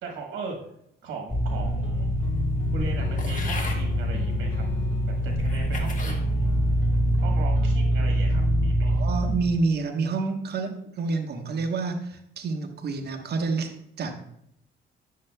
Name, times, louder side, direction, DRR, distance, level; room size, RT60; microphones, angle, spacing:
voice 1, 0.0-0.6 1.0-2.1 2.7-4.6 5.2-6.5 7.2-9.0, right 4 dB, 80° right, 1 dB, 1.2 m, -38 dB
sound 1, 1.3-9.3, right 1 dB, 5° left, 3.0 m, -24 dB
sound 2, 1.5-8.7, left 7 dB, 80° left, 0.6 m, -39 dB
sound 3, 3.2-3.8 4.6-4.7 5.4-6.2 6.8-7.2, left 3 dB, 40° left, 1.3 m, -37 dB
voice 2, 8.8-14.2, right 4 dB, 55° right, 4 dB, 1.1 m, -28 dB
9.5 x 6.4 x 2.2 m, 0.75 s
cardioid pair, 90°, 20 cm